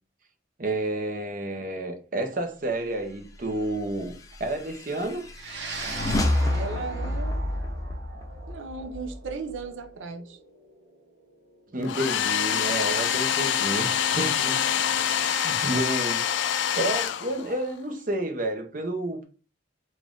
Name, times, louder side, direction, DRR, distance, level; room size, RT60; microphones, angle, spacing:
voice 1, 0.6-4.1 4.4-5.2 11.7-14.6 15.1-16.2 16.8-19.2, right 1 dB, 45° right, 0.8 m, -30 dB
sound 1, 4.0-9.6, left 1 dB, 20° left, 0.5 m, -30 dB
sound 2, 5.3-13.9, right 4 dB, 70° right, 0.9 m, -42 dB
voice 2, 6.5-7.5 8.5-10.4, right 4 dB, 85° right, 0.5 m, -36 dB
Domestic sounds home sounds, 11.8-17.7, left 9 dB, 75° left, 0.3 m, -26 dB
4.2 x 2.4 x 3.6 m
head